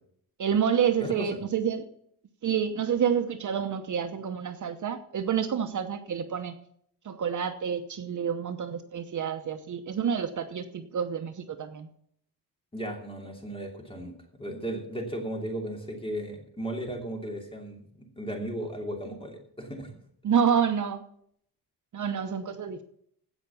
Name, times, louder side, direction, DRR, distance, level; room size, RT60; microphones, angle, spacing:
voice 1, 0.4-1.9 2.4-6.6 7.0-11.9 20.2-21.0 21.9-22.8, right 7 dB, 50° right, 8 dB, 1.0 m, -28 dB
voice 2, 12.7-19.9, right 1 dB, 15° left, 2 dB, 2.9 m, -36 dB
16.5 x 5.9 x 6.9 m, 0.66 s
wide cardioid pair, 150°, 39 cm